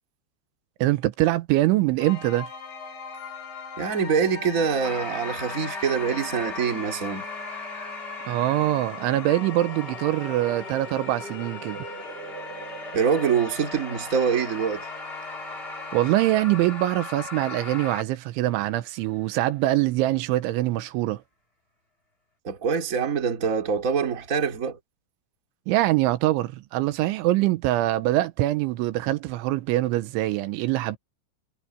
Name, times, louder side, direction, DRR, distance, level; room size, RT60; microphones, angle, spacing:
voice 1, 0.8-2.5 8.3-11.9 15.9-21.2 25.7-31.0, right 16 dB, 85° right, 3.3 m, -24 dB
sound 1, 2.0-16.4, left 4 dB, 75° left, 8.6 m, -41 dB
voice 2, 3.8-7.3 12.9-14.9 22.4-24.8, right 6 dB, 25° right, 2.0 m, -25 dB
sound 2, 4.8-18.0, left 2 dB, 15° left, 2.2 m, -38 dB
omnidirectional pair, 5.4 m